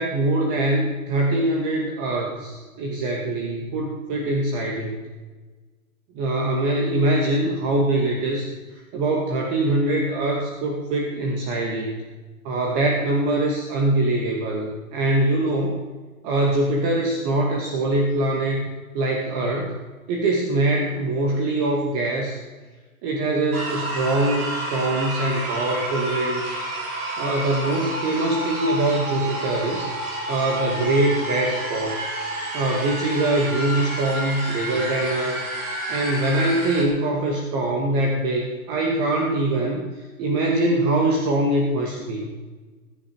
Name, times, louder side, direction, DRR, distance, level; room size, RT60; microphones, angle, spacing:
voice 1, 0.0-5.1 6.1-8.5 8.9-12.1 12.4-15.8 16.2-19.7 20.1-22.4 23.0-26.5 27.2-29.9 30.3-32.0 32.5-35.4 35.9-39.8 40.2-42.3, right 2 dB, 35° right, 0 dB, 2.4 m, -23 dB
sound 1, 23.5-36.8, right 1 dB, 80° right, 5.4 m, -30 dB
21.5 x 10.5 x 4.8 m, 1.3 s
hypercardioid pair, 145°, 43 cm